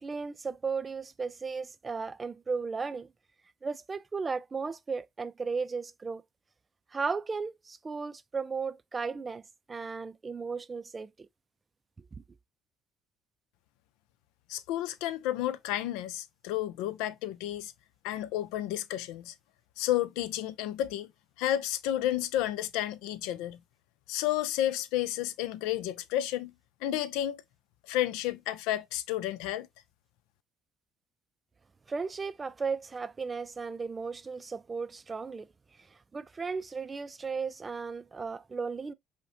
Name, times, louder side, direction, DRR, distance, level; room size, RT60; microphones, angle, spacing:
voice 1, 0.0-3.1 3.6-6.2 6.9-9.4 9.7-11.1 31.9-35.5 36.1-38.9, right 4 dB, 25° right, 0.3 m, -35 dB
voice 2, 14.5-17.7 18.0-19.3 19.8-21.1 21.4-23.6 24.1-26.5 26.8-27.4 27.9-29.7, left 13 dB, 85° left, 0.4 m, -31 dB
5.3 x 2.2 x 2.5 m
supercardioid pair, 90°, 0 cm